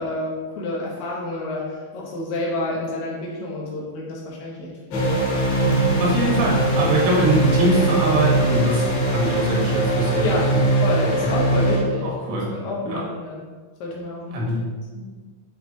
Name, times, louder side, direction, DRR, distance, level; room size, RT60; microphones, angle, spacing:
voice 1, 0.0-5.3 10.2-10.5 10.8-13.4 13.8-14.6 14.9-15.1, left 2 dB, 85° left, -4 dB, 1.9 m, -29 dB
sound 1, 4.9-11.8, right 1 dB, 70° left, 3.5 m, -21 dB
Bass guitar, 5.7-11.9, right 3 dB, 90° right, 3.5 m, -33 dB
voice 2, 6.0-10.6 11.2-11.3 12.0-12.5 12.8-13.0 14.3-14.7, right 1 dB, 70° right, -4 dB, 3.2 m, -23 dB
10.5 x 3.6 x 2.8 m, 1.4 s
omnidirectional pair, 5.4 m